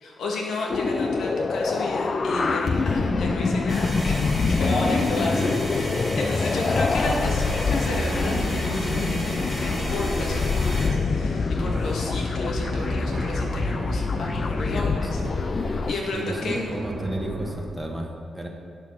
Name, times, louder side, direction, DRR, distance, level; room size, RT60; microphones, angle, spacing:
voice 1, 0.0-15.2 15.9-16.7, left 2 dB, 75° left, -1 dB, 2.0 m, -32 dB
sound 1, 0.7-16.0, left 4 dB, 40° left, 0.4 m, -25 dB
voice 2, 2.9-3.2 5.0-5.5 6.2-6.4 15.0-15.4 16.1-18.5, right 1 dB, 10° right, 1 dB, 1.2 m, -32 dB
sound 2, 3.7-10.9, equal, 15° left, 2.0 m, -34 dB
sound 3, 7.0-17.5, right 2 dB, 50° right, 2.6 m, -34 dB
8.7 x 7.1 x 5.7 m, 2.2 s
cardioid pair, 105°, 0 cm